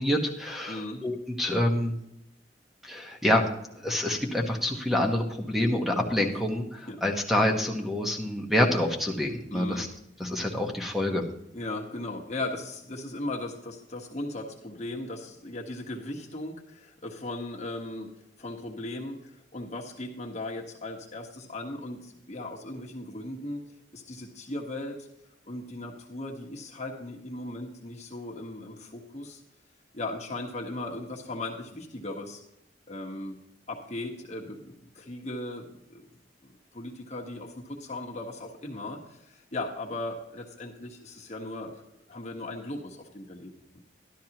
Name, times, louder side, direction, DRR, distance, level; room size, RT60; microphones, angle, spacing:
voice 1, 0.0-2.0 2.8-3.4 3.8-9.9 10.2-11.2, left 1 dB, ahead, 2 dB, 1.2 m, -27 dB
voice 2, 0.7-1.0 5.9-6.0 6.9-7.0 9.5-9.9 11.5-18.1 18.4-23.6 23.9-25.0 25.4-29.4 29.9-32.4 32.9-33.4 33.7-36.0 36.4-41.7 42.1-43.5, left 2 dB, 40° left, -1 dB, 1.3 m, -37 dB
12.0 x 12.0 x 3.0 m, 0.83 s
head